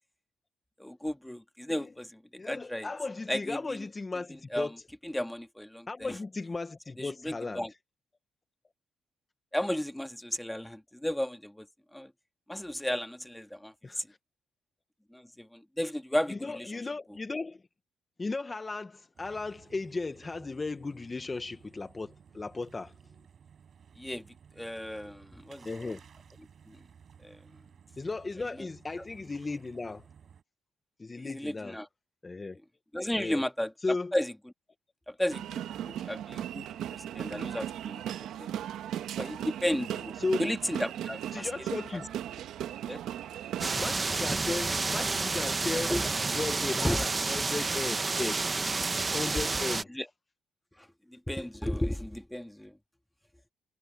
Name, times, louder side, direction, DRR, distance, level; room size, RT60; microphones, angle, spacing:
voice 1, 0.8-2.9 3.3-3.8 4.5-4.7 5.0-6.2 7.0-7.7 9.5-11.7 11.9-12.1 12.5-14.1 15.1-16.7 24.0-25.9 26.7-26.8 27.2-27.4 28.4-28.7 31.2-31.9 32.9-33.7 34.1-34.3 35.1-38.0 38.4-38.5 39.2-40.1 40.4-41.5 42.9-43.0 45.9-46.1 46.8-47.1 49.9-50.1 50.8-52.7, left 1 dB, 5° left, 1.7 m, -34 dB
voice 2, 2.4-4.7 5.9-7.7 13.8-14.2 16.3-17.6 18.2-22.9 25.6-26.0 28.0-30.0 31.0-31.8 32.2-32.6 33.2-33.4 33.8-34.1 40.2-40.4 41.3-42.2 43.8-46.0 46.3-48.6 49.1-49.9, left 3 dB, 25° left, 1.1 m, -36 dB
sound 1, 19.1-30.4, right 7 dB, 55° right, 5.3 m, -56 dB
sound 2, 35.3-43.9, right 11 dB, 80° right, 1.2 m, -37 dB
sound 3, 43.6-49.8, right 3 dB, 30° right, 1.5 m, -30 dB
cardioid pair, 90°, 0 cm